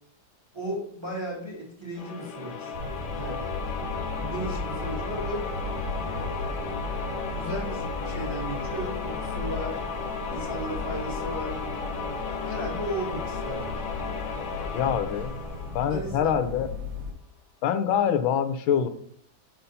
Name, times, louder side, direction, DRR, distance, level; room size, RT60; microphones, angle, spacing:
voice 1, 0.5-2.7 3.1-3.5 3.8-5.4 6.0-6.9 7.3-9.8 10.3-11.6 12.3-13.7 15.9-16.5, right 1 dB, 15° right, -3 dB, 1.6 m, -36 dB
sound 1, 2.0-16.6, left 5 dB, 55° left, 1.0 m, -35 dB
sound 2, 2.7-17.1, left 2 dB, 70° right, 1.6 m, -36 dB
voice 2, 14.7-15.3 15.7-16.7 17.6-18.9, left 8 dB, 85° left, 10 dB, 1.5 m, -25 dB
5.8 x 4.1 x 5.4 m, 0.63 s
omnidirectional pair, 2.1 m